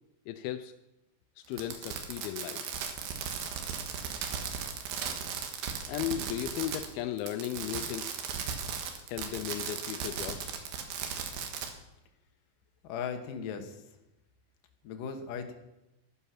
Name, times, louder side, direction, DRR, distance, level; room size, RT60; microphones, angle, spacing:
voice 1, 0.3-0.7 1.4-2.7 5.9-8.2 9.1-10.5, left 11 dB, 85° left, 10 dB, 2.5 m, -36 dB
Fireworks, 1.5-6.9 7.2-11.7, right 7 dB, 80° right, 3.2 m, -36 dB
voice 2, 12.8-13.8 14.8-15.5, left 6 dB, 70° left, 6 dB, 2.7 m, -37 dB
11.5 x 11.0 x 5.9 m, 0.95 s
omnidirectional pair, 4.3 m